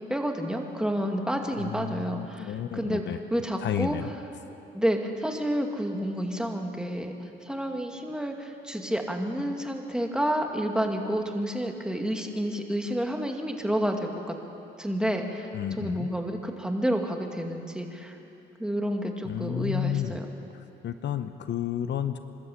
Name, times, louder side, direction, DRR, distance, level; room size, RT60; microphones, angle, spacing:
voice 1, 0.0-3.0 3.3-4.0 4.7-14.4 14.8-15.5 15.8-18.2 18.6-20.2, equal, 5° right, 3 dB, 2.3 m, -29 dB
voice 2, 1.6-3.2 3.6-4.1 15.5-16.1 19.2-20.2 20.5-22.2, left 10 dB, 65° left, 10 dB, 0.9 m, -31 dB
27.0 x 13.0 x 8.5 m, 2.9 s
cardioid pair, 90°, 20 cm